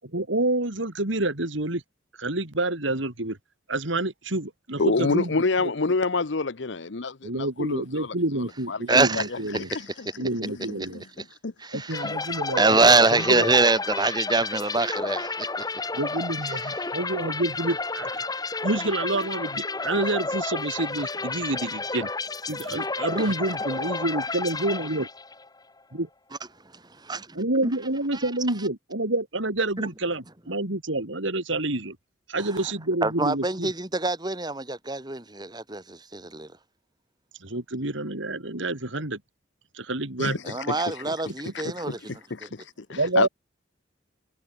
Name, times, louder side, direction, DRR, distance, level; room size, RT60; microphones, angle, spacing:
voice 1, 0.0-1.8 2.2-3.4 3.7-5.3 5.6-5.7 7.2-9.7 10.2-11.0 11.7-12.8 13.1-13.5 15.9-18.3 18.6-22.1 22.5-25.0 26.0-26.1 27.4-32.0 32.3-33.7 37.4-39.2 39.7-40.4 42.9-43.3, right 2 dB, 75° right, 3.2 m, -28 dB
voice 2, 4.8-8.1 8.7-9.2 9.5-10.1 10.4-12.1 40.2-40.8 41.5-43.3, left 3 dB, 65° left, 0.9 m, -28 dB
voice 3, 8.9-9.3 9.7-9.8 11.2-11.3 11.6-12.1 12.6-15.6 16.4-16.9 22.7-22.8 23.2-23.3 26.7-27.2 27.6-27.7 28.1-28.3 32.4-32.6 33.0-36.5 40.4-42.0 42.4-42.5, right 3 dB, 20° right, 2.5 m, -24 dB
sound 1, 11.9-25.5, left 3 dB, 20° left, 1.7 m, -31 dB
head